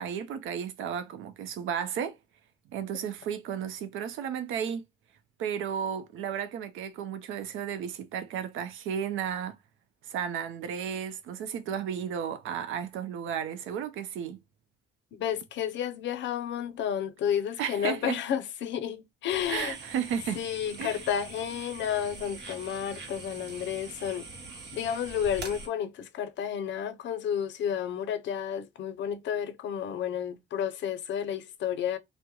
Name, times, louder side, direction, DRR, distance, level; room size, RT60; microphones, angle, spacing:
voice 1, 0.0-2.2 2.7-4.8 5.4-9.6 10.0-14.4 17.6-18.2 19.5-20.4 20.8-21.0, right 8 dB, 85° right, 0.5 m, -33 dB
voice 2, 15.1-19.7 20.4-24.3 24.7-32.0, left 9 dB, 65° left, 0.5 m, -31 dB
sound 1, 19.3-25.7, right 3 dB, 60° right, 1.0 m, -43 dB
2.3 x 2.0 x 2.9 m
cardioid pair, 90°, 20 cm